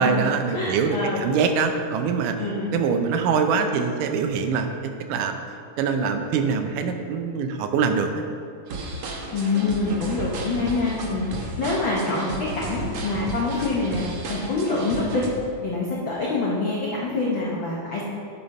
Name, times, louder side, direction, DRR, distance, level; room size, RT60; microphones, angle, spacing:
voice 1, 0.0-2.4 2.7-5.4 5.8-8.1, right 5 dB, 85° right, 6 dB, 2.3 m, -24 dB
voice 2, 0.5-1.2 2.4-2.7 9.3-15.2 15.6-18.0, left 3 dB, 75° left, -4 dB, 1.0 m, -26 dB
sound 1, 8.7-15.3, right 2 dB, 65° right, 1.6 m, -33 dB
8.8 x 5.6 x 5.3 m, 2.4 s
omnidirectional pair, 3.7 m